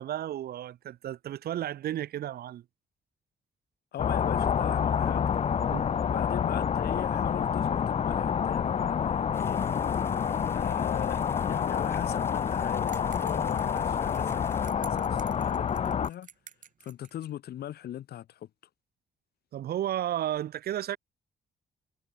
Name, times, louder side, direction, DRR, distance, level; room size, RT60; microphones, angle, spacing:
voice 1, 0.0-2.6 5.7-6.0 19.5-21.0, right 12 dB, 75° right, 0.8 m, -33 dB
voice 2, 3.9-5.3 6.0-9.6 10.5-11.2 11.5-16.3 16.8-18.5, left 12 dB, 80° left, 1.3 m, -40 dB
sound 1, 4.0-16.1, left 7 dB, 40° left, 0.6 m, -28 dB
sound 2, 9.3-14.7, left 2 dB, 15° left, 1.1 m, -46 dB
sound 3, 12.9-17.3, right 8 dB, 55° right, 3.3 m, -51 dB
cardioid pair, 115°, 16 cm